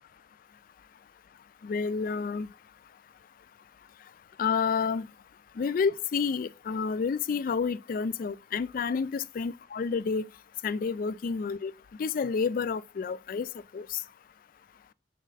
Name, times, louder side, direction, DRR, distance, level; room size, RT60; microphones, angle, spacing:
voice 1, 1.6-2.5 4.4-5.1 5.6-10.3 10.6-11.7 12.0-13.5 13.7-14.0, left 5 dB, 50° left, 0.3 m, -29 dB
6.3 x 4.1 x 3.9 m
head